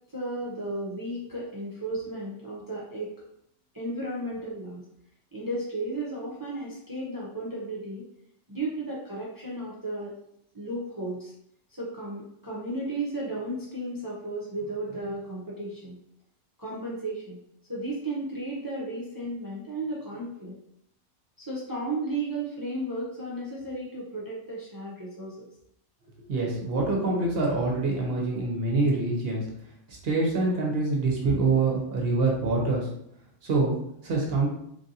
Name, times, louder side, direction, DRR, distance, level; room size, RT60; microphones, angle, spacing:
voice 1, 0.1-3.1 3.7-4.8 5.3-8.1 8.5-10.1 10.5-11.3 11.8-16.0 16.6-17.4 17.7-20.6 21.4-25.5, right 1 dB, 35° right, -6 dB, 0.3 m, -34 dB
voice 2, 26.3-29.4 29.9-32.9 33.4-33.8 34.0-34.5, right 3 dB, 55° right, -1 dB, 0.8 m, -25 dB
3.2 x 2.6 x 2.6 m, 0.72 s
omnidirectional pair, 1.4 m